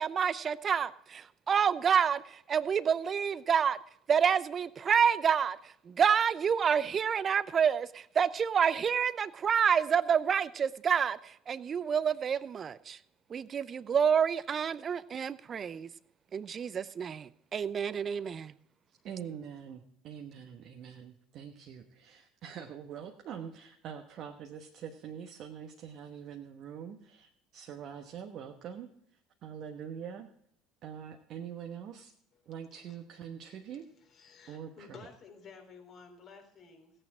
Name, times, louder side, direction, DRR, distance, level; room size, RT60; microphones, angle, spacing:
voice 1, 0.0-3.8 4.1-5.6 5.9-11.2 11.5-13.0 13.3-15.9 16.3-18.5, right 7 dB, 40° right, 17 dB, 0.6 m, -28 dB
voice 2, 18.9-30.3 30.8-32.1 32.5-33.9 34.5-35.1, right 8 dB, 55° right, 3 dB, 1.1 m, -44 dB
voice 3, 34.0-36.9, left 5 dB, 50° left, 3 dB, 3.6 m, -53 dB
16.5 x 8.9 x 4.8 m, 0.67 s
hypercardioid pair, 65°, 0 cm